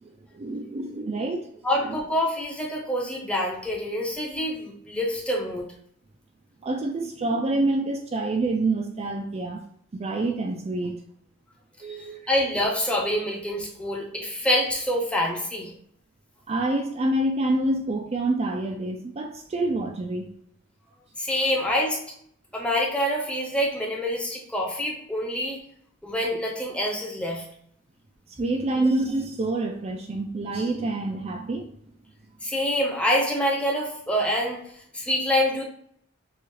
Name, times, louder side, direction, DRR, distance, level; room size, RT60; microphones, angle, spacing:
voice 1, 0.0-1.5 1.8-2.0 6.6-9.6 9.9-11.0 11.8-12.3 16.5-20.3 28.4-31.7, right 2 dB, 30° right, 3 dB, 0.4 m, -27 dB
voice 2, 1.6-5.7 12.3-15.7 21.2-22.0 22.5-25.6 26.0-27.5 32.4-34.6 34.9-35.6, left 1 dB, 5° left, -2 dB, 0.8 m, -26 dB
6.7 x 2.4 x 3.2 m, 0.67 s
head